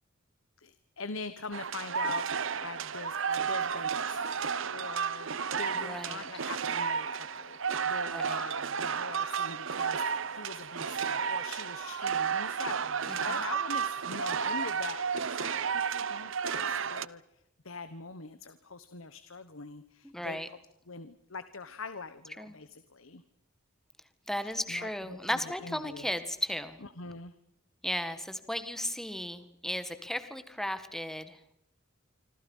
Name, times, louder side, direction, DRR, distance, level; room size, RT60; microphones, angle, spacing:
voice 1, 0.6-20.6 20.9-23.2 24.4-26.1 26.8-27.3, left 4 dB, 75° left, 12 dB, 1.3 m, -43 dB
sound 1, 1.5-17.1, right 6 dB, 65° right, 0.8 m, -32 dB
voice 2, 5.7-6.2 8.1-8.4 13.1-13.4 20.0-20.5 22.4-22.5 24.3-26.8 27.8-31.4, left 1 dB, ahead, 10 dB, 1.7 m, -35 dB
26.5 x 26.0 x 5.6 m, 0.78 s
head